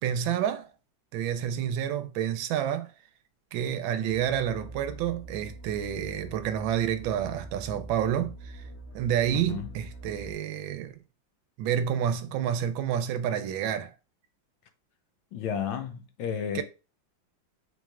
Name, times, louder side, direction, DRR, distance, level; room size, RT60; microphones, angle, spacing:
voice 1, 0.0-0.7 1.1-2.9 3.5-8.6 8.9-11.0 11.6-13.9 16.5-16.6, right 9 dB, 85° right, 1.3 m, -29 dB
sound 1, 4.1-10.3, right 2 dB, 40° left, 1.3 m, -44 dB
voice 2, 9.3-9.7 15.3-16.6, left 8 dB, 80° left, 1.3 m, -32 dB
4.4 x 3.1 x 2.4 m
omnidirectional pair, 2.1 m